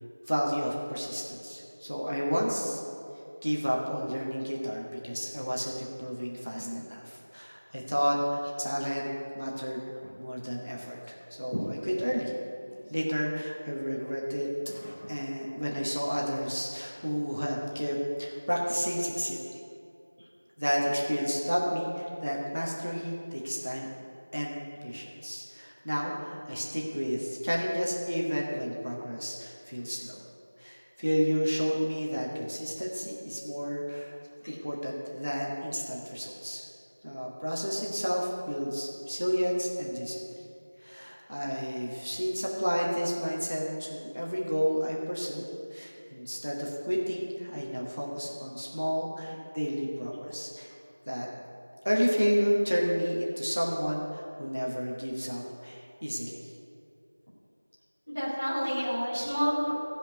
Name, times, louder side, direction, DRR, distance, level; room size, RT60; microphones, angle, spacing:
voice 1, 0.3-2.8 3.4-9.1 9.3-9.8 10.2-12.3 12.9-14.5 15.1-19.4 20.6-23.9 24.3-24.5 24.8-30.2 30.6-34.2 34.5-36.7 37.0-40.2 40.8-45.4 45.7-50.7 51.1-51.3 51.8-56.5, equal, 25° right, -3 dB, 1.3 m, -31 dB
voice 2, 14.7-15.1 34.4-34.6 58.1-59.7, equal, 10° left, -12 dB, 1.2 m, -31 dB
15.0 x 5.1 x 9.1 m, 2.6 s
figure-of-eight pair, 180°, 0 cm